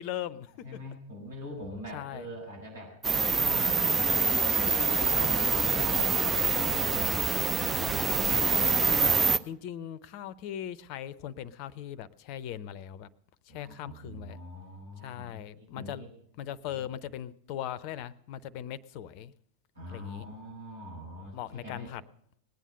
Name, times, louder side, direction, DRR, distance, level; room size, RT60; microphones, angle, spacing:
voice 1, 0.0-0.8 1.9-2.3 9.4-13.1 13.4-14.4 15.0-16.1 16.4-19.3 19.9-20.3 21.3-22.0, left 10 dB, 45° left, 19 dB, 0.7 m, -39 dB
voice 2, 0.6-3.0 3.3-8.2 8.5-8.9 13.5-16.1 16.7-16.9 19.8-21.9, equal, 70° right, -1 dB, 7.1 m, -43 dB
sound 1, 3.0-9.4, right 4 dB, 15° right, 0.5 m, -25 dB
20.0 x 9.2 x 6.6 m, 0.69 s
figure-of-eight pair, 90°, 0 cm